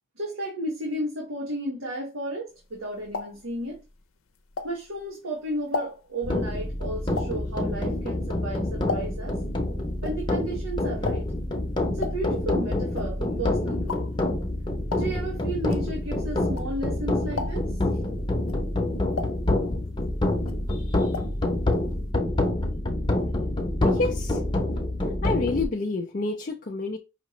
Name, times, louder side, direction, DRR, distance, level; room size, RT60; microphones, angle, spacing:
voice 1, 0.2-3.8 4.6-9.4 10.0-11.2 11.9-14.1 15.0-17.8, right 1 dB, 85° right, 1.4 m, -33 dB
sound 1, 2.6-5.1 5.5-9.4 9.7-17.0 17.3-17.9 18.3-20.1 20.4-21.4 21.7-21.8 22.1-22.2, left 4 dB, 90° left, 0.6 m, -36 dB
sound 2, 6.2-25.6, left 1 dB, 25° left, 0.8 m, -27 dB
voice 2, 20.7-21.2 23.8-24.4 25.2-27.0, left 3 dB, 40° left, 0.5 m, -29 dB
5.6 x 2.9 x 3.1 m
head